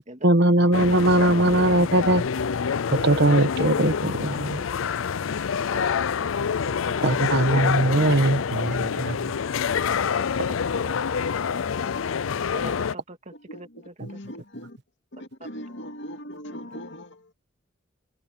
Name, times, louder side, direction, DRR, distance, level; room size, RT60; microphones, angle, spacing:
voice 1, 0.2-2.2 2.9-3.9 4.2-4.5 7.0-9.2, right 2 dB, 60° right, 1.2 m, -20 dB
sound 1, 0.7-13.0, left 6 dB, 80° left, 0.5 m, -26 dB
voice 2, 2.9-3.5 4.3-4.7 5.7-6.3 6.7-6.8 7.5-8.3 8.8-9.2 10.2-11.3 11.8-11.9 12.5-14.1 16.6-16.8, right 1 dB, 35° right, 2.3 m, -42 dB
voice 3, 6.6-7.1 8.0-8.3 11.9-12.0 13.3-14.8 15.1-17.3, equal, 60° left, 2.5 m, -40 dB
open air
head